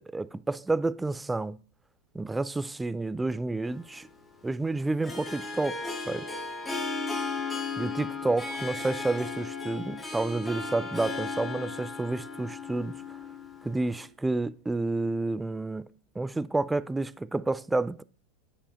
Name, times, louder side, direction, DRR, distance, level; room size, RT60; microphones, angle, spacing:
voice 1, 0.0-1.6 2.1-4.1 4.4-5.8 6.1-6.4 7.8-13.0 13.6-15.9 16.2-18.0, right 2 dB, 10° right, 0.3 m, -30 dB
Harp, 3.7-14.1, left 4 dB, 10° left, 1.5 m, -36 dB
9.9 x 5.5 x 2.5 m
figure-of-eight pair, 85°, 0 cm